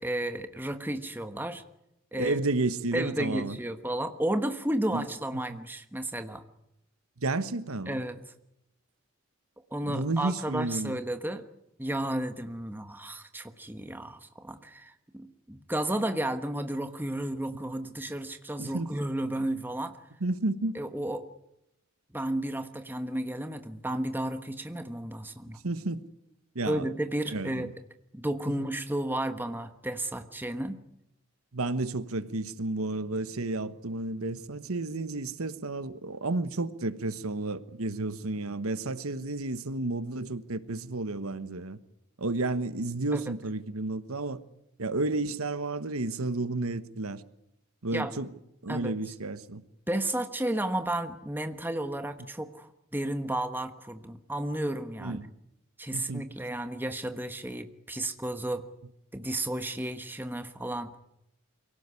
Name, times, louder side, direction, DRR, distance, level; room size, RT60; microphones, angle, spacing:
voice 1, 0.0-1.6 2.1-2.4 2.9-6.4 7.9-8.2 9.7-11.4 11.8-20.0 20.7-21.2 22.1-25.6 26.7-27.7 28.1-30.8 43.1-43.2 47.9-48.1 48.7-48.9 49.9-55.2 55.8-58.6 59.1-60.9, right 1 dB, 10° right, 1.2 m, -32 dB
voice 2, 2.2-3.6 4.9-5.1 5.3-5.6 7.2-8.0 9.8-11.0 18.6-18.9 20.2-20.8 25.6-26.0 26.5-26.9 27.3-27.7 28.5-28.7 31.5-41.8 42.2-44.4 44.8-47.2 47.8-48.3 48.6-49.6 55.0-55.2 55.9-56.3, right 2 dB, 85° right, 1.2 m, -32 dB
23.5 x 17.5 x 9.7 m
head